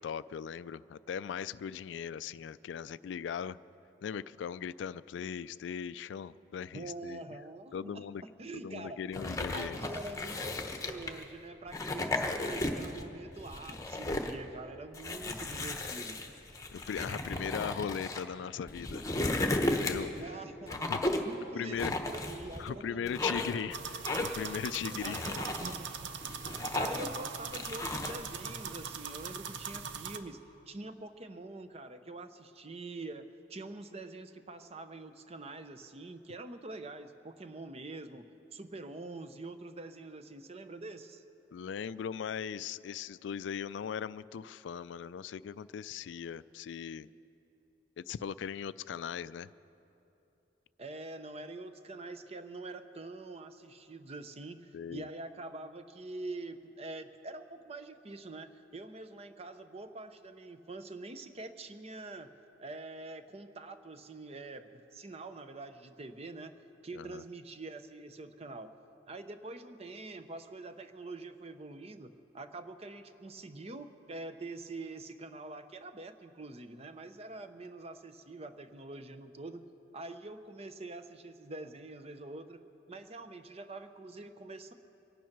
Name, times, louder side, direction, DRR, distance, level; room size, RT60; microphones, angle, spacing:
voice 1, 0.0-3.6 4.0-7.2 7.7-8.2 8.5-9.8 16.7-20.1 20.8-21.0 21.5-21.9 22.6-25.4 26.6-26.7 41.5-47.1 48.0-49.5 54.7-55.0 66.9-67.2, left 7 dB, 75° left, 17 dB, 0.3 m, -39 dB
voice 2, 6.7-9.0 9.5-16.2 20.2-21.0 21.2-23.8 24.9-25.9 26.7-30.4 30.7-41.2 50.8-62.3 62.6-66.6 66.8-68.7 69.1-79.7 79.9-82.6 82.9-84.7, right 2 dB, 35° right, 9 dB, 0.7 m, -45 dB
sound 1, 9.1-11.2 11.7-13.0 13.4-14.4 14.9-18.2 18.7-20.2 20.7-21.3 21.8-22.7 23.1-23.6 24.0-24.5 24.9-25.8 26.2-27.2 27.5-28.2, left 2 dB, 20° left, 0.9 m, -34 dB
sound 2, 23.7-30.2, right 6 dB, 70° right, 0.7 m, -41 dB
24.0 x 9.3 x 5.9 m, 2.9 s
head